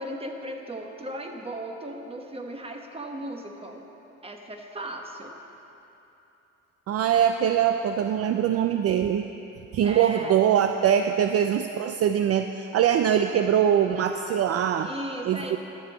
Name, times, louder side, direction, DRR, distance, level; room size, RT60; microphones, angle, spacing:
voice 1, 0.0-3.8 4.2-5.4 9.8-10.4 14.8-15.6, right 1 dB, 20° right, 2 dB, 1.2 m, -36 dB
voice 2, 6.9-9.3 9.7-14.9 15.2-15.6, right 9 dB, 55° right, 7 dB, 0.4 m, -23 dB
11.5 x 5.5 x 8.0 m, 3.0 s
cardioid pair, 90°, 30 cm